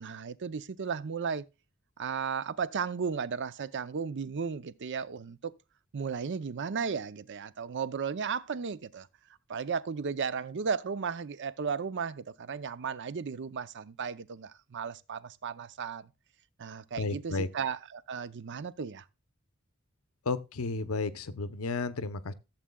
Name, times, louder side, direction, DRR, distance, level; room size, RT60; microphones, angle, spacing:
voice 1, 0.0-1.4 2.0-5.5 5.9-9.1 9.5-16.1 16.6-19.0, right 6 dB, 60° right, 0.6 m, -35 dB
voice 2, 17.0-17.5 20.3-22.3, left 3 dB, 80° left, 0.7 m, -32 dB
15.0 x 7.5 x 2.2 m
head